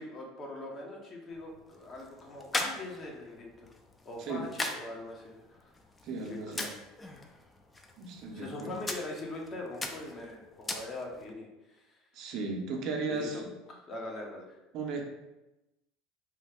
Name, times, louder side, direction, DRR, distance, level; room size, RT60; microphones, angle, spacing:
voice 1, 0.0-3.7 4.0-5.7 6.2-6.7 8.3-12.0 13.1-13.4 13.7-14.6, left 2 dB, 40° left, -1 dB, 0.8 m, -42 dB
sound 1, 1.3-11.3, left 2 dB, 20° left, 0.4 m, -41 dB
voice 2, 6.0-6.7 8.0-8.8 12.1-13.5 14.7-15.0, right 3 dB, 60° right, 2 dB, 0.6 m, -36 dB
3.0 x 2.3 x 3.5 m, 0.97 s
supercardioid pair, 95°, 0 cm